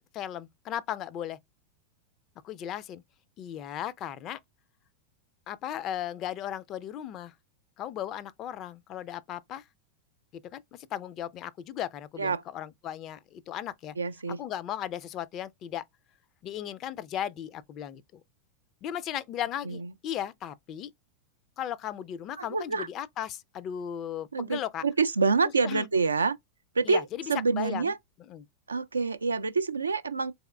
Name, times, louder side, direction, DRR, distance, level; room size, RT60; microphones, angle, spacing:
voice 1, 0.1-1.4 2.4-3.0 3.4-4.4 5.5-7.3 7.8-9.6 10.3-14.0 14.4-15.8 16.4-18.2 18.8-20.9 21.6-24.8 25.6-25.9 26.8-27.9 28.3-28.5, left 10 dB, 35° left, 0.4 m, -36 dB
voice 2, 14.0-14.4 19.7-19.9 22.4-22.9 24.3-26.4 26.8-27.0 27.3-28.0 28.7-30.3, right 4 dB, 75° right, 0.3 m, -27 dB
4.1 x 3.4 x 2.3 m
figure-of-eight pair, 90°, 0 cm